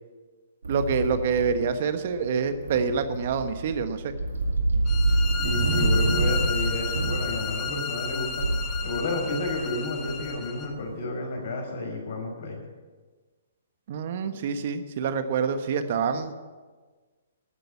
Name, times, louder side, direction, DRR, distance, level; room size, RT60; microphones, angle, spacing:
sound 1, 0.6-10.8, right 2 dB, 85° right, 2.0 m, -28 dB
voice 1, 0.7-4.1 13.9-16.3, right 6 dB, 55° right, 9 dB, 1.2 m, -26 dB
sound 2, 4.9-10.7, left 6 dB, 25° left, 1.2 m, -33 dB
voice 2, 5.4-8.5 8.8-12.6, left 2 dB, 60° left, 1 dB, 5.2 m, -31 dB
13.0 x 9.1 x 8.5 m, 1.4 s
hypercardioid pair, 130°, 0 cm